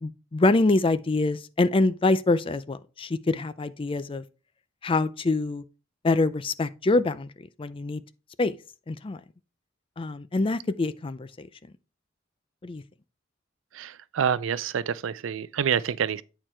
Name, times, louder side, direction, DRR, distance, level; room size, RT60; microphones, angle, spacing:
voice 1, 0.0-4.2 4.8-5.6 6.0-8.0 8.4-8.5 8.9-9.2 10.0-11.5 12.6-12.8, left 2 dB, 25° left, 0.4 m, -25 dB
voice 2, 13.7-16.2, right 7 dB, 80° right, 0.4 m, -27 dB
8.5 x 4.5 x 4.4 m
head